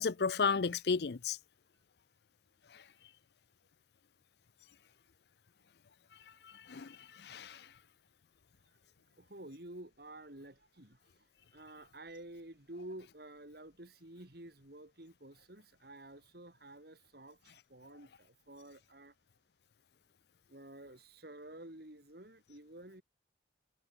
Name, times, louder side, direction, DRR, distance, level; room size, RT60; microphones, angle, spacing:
voice 1, 0.0-1.4 6.4-7.7, left 5 dB, 60° left, 0.5 m, -33 dB
voice 2, 8.6-19.1 20.5-23.0, right 1 dB, 55° right, 2.8 m, -51 dB
head